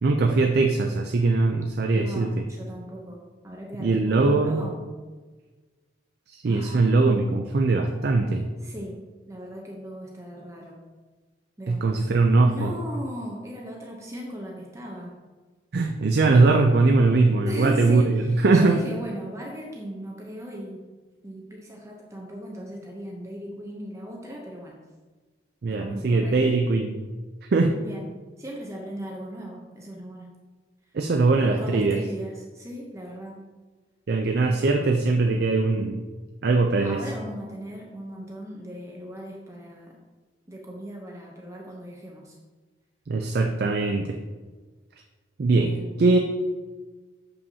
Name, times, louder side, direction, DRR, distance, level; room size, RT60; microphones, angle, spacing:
voice 1, 0.0-2.3 3.8-4.7 6.3-8.4 11.7-12.7 15.7-18.8 25.6-26.9 27.5-27.7 30.9-32.0 34.1-36.0 36.4-37.0 43.1-44.2 45.4-46.2, right 3 dB, 55° right, 4 dB, 0.4 m, -21 dB
voice 2, 1.9-4.8 6.5-6.9 8.6-9.0 9.3-10.8 11.6-12.1 12.5-15.2 17.5-20.9 21.2-24.8 25.7-26.5 27.8-28.1 28.4-30.3 31.6-33.4 36.8-40.0 40.5-42.4 45.6-46.0, equal, 15° right, -1 dB, 0.7 m, -37 dB
6.9 x 5.4 x 2.7 m, 1.3 s
head